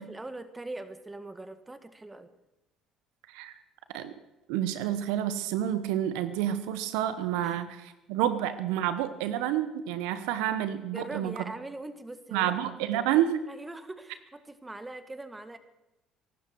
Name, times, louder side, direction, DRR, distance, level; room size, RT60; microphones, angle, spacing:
voice 1, 0.0-2.3 7.4-7.6 10.9-12.5 12.9-13.1 13.5-15.6, right 2 dB, 15° right, 10 dB, 1.8 m, -41 dB
voice 2, 4.5-11.3 12.3-13.4, right 11 dB, 80° right, 12 dB, 0.9 m, -29 dB
23.5 x 12.5 x 4.7 m, 0.96 s
hypercardioid pair, 65°, 0 cm